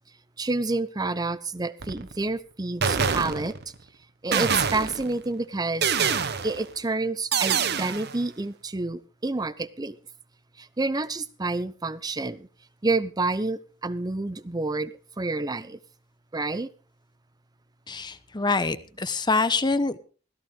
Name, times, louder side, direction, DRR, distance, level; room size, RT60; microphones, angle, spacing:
voice 1, 0.4-3.6 4.2-6.0 6.4-10.0 10.6-12.5 12.8-15.8 16.3-16.7, right 3 dB, 20° right, 16 dB, 0.7 m, -29 dB
sound 1, 1.8-2.2 2.8-3.7 4.3-5.2 5.8-6.7 7.3-8.2, right 6 dB, 60° right, 1.0 m, -26 dB
voice 2, 17.9-20.0, left 3 dB, 25° left, 12 dB, 1.0 m, -25 dB
16.5 x 14.0 x 3.7 m, 0.39 s
head